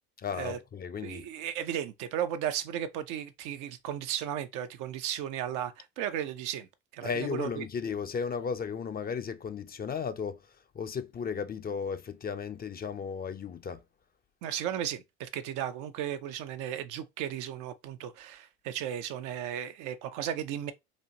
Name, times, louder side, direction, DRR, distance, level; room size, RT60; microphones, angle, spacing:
voice 1, 0.2-1.3 7.0-13.9, left 6 dB, 30° left, 0.5 m, -35 dB
voice 2, 1.0-6.7 6.9-7.7 14.4-20.7, right 10 dB, 65° right, 0.6 m, -35 dB
4.2 x 2.5 x 2.7 m
hypercardioid pair, 65°, 33 cm